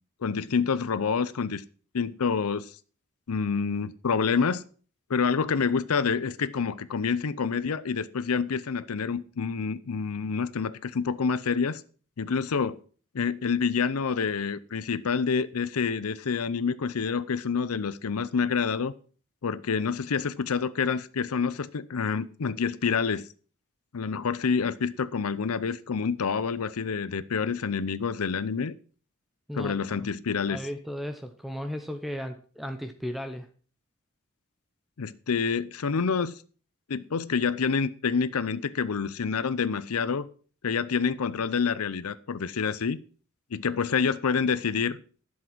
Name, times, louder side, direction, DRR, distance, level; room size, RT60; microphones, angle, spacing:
voice 1, 0.2-1.6 1.9-2.7 3.3-4.6 5.1-11.8 12.2-12.8 13.1-18.9 19.4-23.3 23.9-28.7 29.5-30.6 35.0-36.3 36.9-40.3 40.6-43.0 43.5-45.0, left 5 dB, 90° left, 16 dB, 0.6 m, -27 dB
voice 2, 30.5-33.5, equal, ahead, 7 dB, 0.7 m, -35 dB
11.5 x 7.4 x 6.0 m, 0.42 s
head